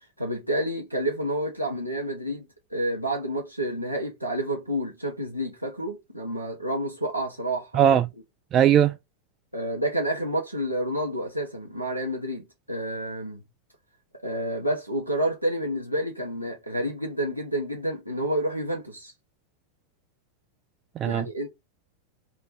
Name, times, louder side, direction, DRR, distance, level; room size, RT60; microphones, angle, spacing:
voice 1, 0.2-7.9 9.5-13.4 14.2-19.1 21.0-21.5, right 1 dB, 90° right, 0.9 m, -29 dB
voice 2, 7.7-8.1 8.5-8.9 21.0-21.3, right 10 dB, 30° right, 0.3 m, -19 dB
3.6 x 2.2 x 4.2 m
figure-of-eight pair, 90°, 0 cm